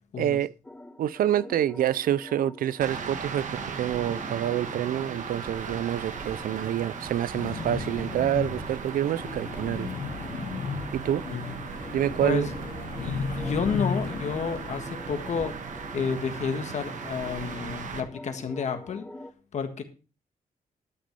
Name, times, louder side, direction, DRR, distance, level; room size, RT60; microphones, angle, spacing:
voice 1, 0.2-0.5 1.0-9.9 10.9-11.2 11.9-12.5, right 11 dB, 80° right, 0.4 m, -27 dB
sound 1, 0.6-19.3, left 1 dB, 10° left, 0.7 m, -45 dB
sound 2, 2.8-18.0, right 6 dB, 60° right, 1.4 m, -37 dB
sound 3, 7.3-14.9, left 5 dB, 80° left, 1.8 m, -35 dB
voice 2, 12.2-12.5 13.0-15.5 15.9-19.1 19.5-19.8, left 6 dB, 55° left, 1.6 m, -30 dB
12.5 x 6.2 x 5.3 m
wide cardioid pair, 180°, 15 cm